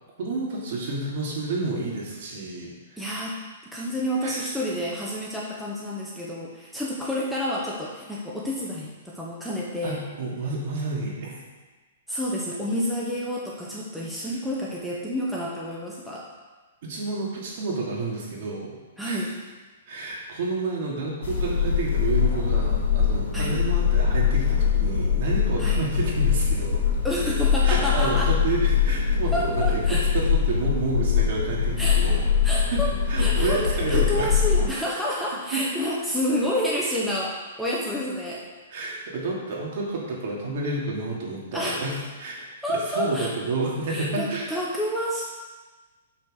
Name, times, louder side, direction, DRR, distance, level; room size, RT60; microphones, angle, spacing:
voice 1, 0.2-3.0 4.2-4.5 9.8-11.3 16.8-18.8 19.0-19.2 19.9-26.8 27.6-32.3 32.7-34.3 34.6-34.7 35.5-35.6 38.7-41.9 42.2-42.4 42.7-44.5, right 3 dB, 50° right, -3 dB, 2.7 m, -30 dB
voice 2, 3.0-3.4 3.7-10.0 12.1-16.3 19.0-19.3 23.3-23.6 25.6-25.9 27.0-28.3 29.3-30.0 31.8-32.0 32.4-32.9 33.2-38.4 41.5-41.8 42.6-43.3 43.9-45.2, equal, ahead, -6 dB, 1.0 m, -29 dB
sound 1, 21.2-34.7, left 7 dB, 65° left, 3.1 m, -23 dB
6.5 x 6.2 x 6.4 m, 1.3 s
hypercardioid pair, 155°, 0 cm